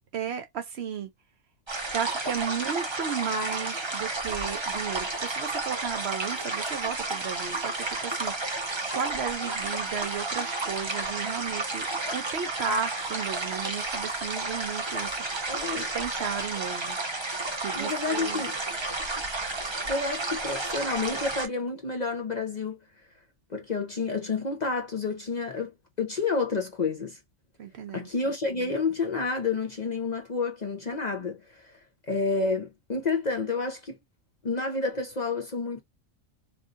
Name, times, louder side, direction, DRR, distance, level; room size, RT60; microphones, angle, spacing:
voice 1, 0.1-1.1 1.9-15.5 15.7-17.0 17.6-18.4 27.6-28.1, right 7 dB, 60° right, 0.8 m, -34 dB
sound 1, 1.7-21.5, right 3 dB, 30° right, 0.6 m, -32 dB
voice 2, 15.5-15.9 17.7-18.6 19.9-22.8 23.5-27.2 27.9-31.7 32.1-34.0 34.4-35.8, left 4 dB, 40° left, 0.7 m, -29 dB
3.0 x 2.7 x 2.4 m
omnidirectional pair, 1.3 m